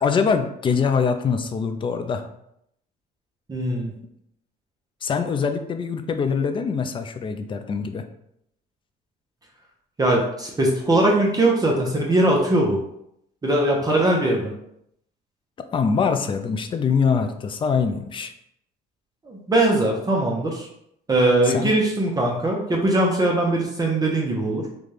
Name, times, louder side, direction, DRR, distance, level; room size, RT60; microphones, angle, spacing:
voice 1, 0.0-2.3 5.0-8.0 15.7-18.3 21.5-21.7, left 5 dB, 30° left, 8 dB, 0.4 m, -23 dB
voice 2, 3.5-3.9 10.0-12.8 13.4-14.5 19.2-20.7 21.1-24.6, right 1 dB, 20° right, -1 dB, 0.7 m, -20 dB
3.9 x 2.3 x 3.2 m, 0.75 s
cardioid pair, 110°, 17 cm